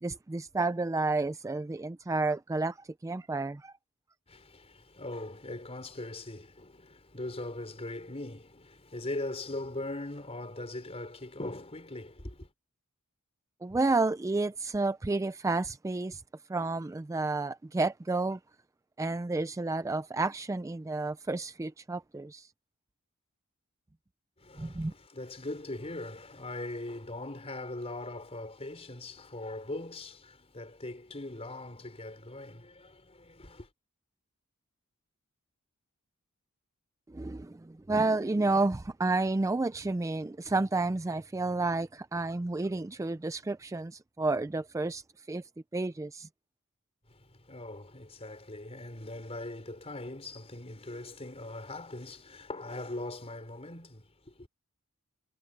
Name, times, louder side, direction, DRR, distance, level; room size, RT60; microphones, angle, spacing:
voice 1, 0.0-3.7 13.6-16.2 16.5-18.4 19.0-22.5 24.6-24.9 37.1-45.4 45.7-46.3, right 3 dB, 15° right, 0.4 m, -31 dB
voice 2, 4.3-12.5 24.4-33.7 47.1-54.5, left 2 dB, 30° left, 4.4 m, -41 dB
head